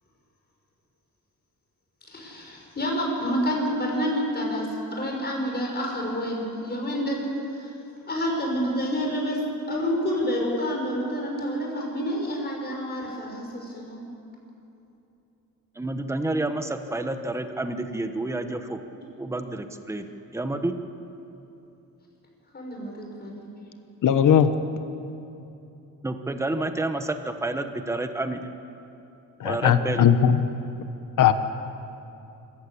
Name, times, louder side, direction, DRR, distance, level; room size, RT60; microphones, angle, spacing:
voice 1, 2.1-7.2 7.5-7.7 8.1-9.4 9.7-14.0 22.5-23.5, equal, 30° left, -1 dB, 6.2 m, -28 dB
voice 2, 15.8-18.8 19.2-20.0 20.3-20.7 26.0-28.5 29.4-30.1, right 2 dB, 10° right, 7 dB, 1.1 m, -29 dB
voice 3, 24.0-24.5 29.4-30.4 31.2-31.3, left 9 dB, 60° left, 10 dB, 1.2 m, -18 dB
25.5 x 15.0 x 8.6 m, 2.9 s
cardioid pair, 130°, 35 cm